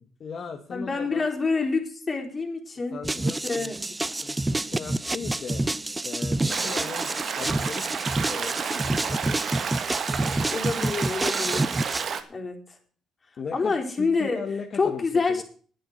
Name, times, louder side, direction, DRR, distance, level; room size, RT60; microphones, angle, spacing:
voice 1, 0.0-1.3 2.9-3.7 4.2-4.4 4.7-5.6 6.0-7.1 7.4-9.6 13.4-15.0 15.3-15.4, left 6 dB, 55° left, 2 dB, 1.9 m, -37 dB
voice 2, 0.7-3.8 10.5-11.7 12.3-12.8 13.5-14.4 14.8-15.4, left 4 dB, 35° left, 2 dB, 4.1 m, -27 dB
sound 1, 3.0-12.0, right 2 dB, 20° right, 0.7 m, -28 dB
Stream, 6.5-12.2, right 6 dB, 60° right, 1.7 m, -31 dB
10.0 x 9.5 x 8.0 m, 0.43 s
supercardioid pair, 65°, 0 cm